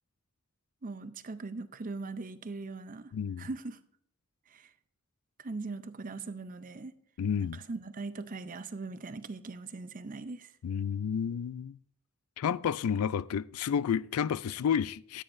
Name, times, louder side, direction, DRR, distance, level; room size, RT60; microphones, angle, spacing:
voice 1, 0.8-3.8 4.5-4.7 5.4-6.9 7.5-10.5, right 3 dB, 40° right, 0.5 m, -40 dB
voice 2, 3.1-3.5 7.2-7.6 10.6-11.8 12.4-15.2, left 7 dB, 85° left, 0.3 m, -31 dB
14.5 x 9.1 x 2.6 m
head